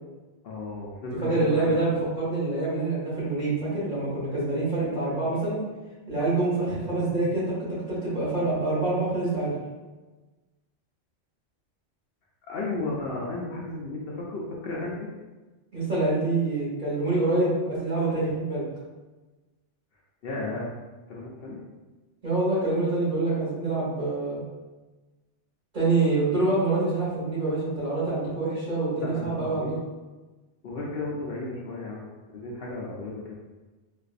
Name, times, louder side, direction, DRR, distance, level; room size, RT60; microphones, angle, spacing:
voice 1, 0.4-1.8 12.5-15.1 20.2-20.7 21.1-21.6 29.0-29.7 30.6-32.1 32.3-33.3, left 2 dB, 65° left, -4 dB, 0.7 m, -34 dB
voice 2, 1.2-5.6 6.1-9.5 15.7-18.6 22.2-24.4 25.7-29.8, right 2 dB, 40° right, -9 dB, 1.5 m, -26 dB
3.8 x 2.5 x 2.4 m, 1.2 s
omnidirectional pair, 1.2 m